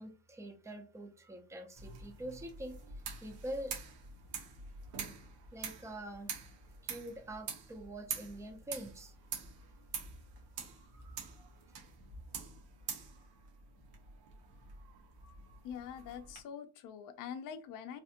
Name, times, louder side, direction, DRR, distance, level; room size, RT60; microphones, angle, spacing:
voice 1, 0.0-3.7 5.5-6.3 6.8-9.1, right 1 dB, 10° right, 6 dB, 0.4 m, -45 dB
sound 1, 1.8-16.4, right 6 dB, 80° right, 1.1 m, -46 dB
voice 2, 15.6-18.0, left 8 dB, 55° left, 8 dB, 0.5 m, -44 dB
3.3 x 2.4 x 2.7 m, 0.35 s
cardioid pair, 130°, 38 cm